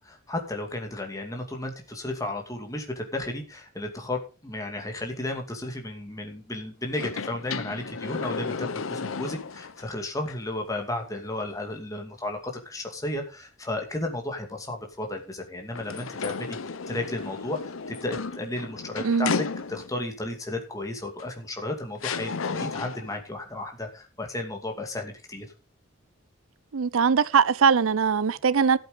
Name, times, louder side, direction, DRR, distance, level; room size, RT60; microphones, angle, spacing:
voice 1, 0.0-25.5, left 1 dB, 15° left, 2.4 m, -34 dB
sound 1, 6.9-9.8 10.3-10.4 15.7-20.1 21.2-21.3 22.0-23.2, left 5 dB, 75° left, 0.7 m, -33 dB
voice 2, 26.7-28.8, right 6 dB, 80° right, 0.5 m, -21 dB
13.5 x 8.0 x 5.0 m
head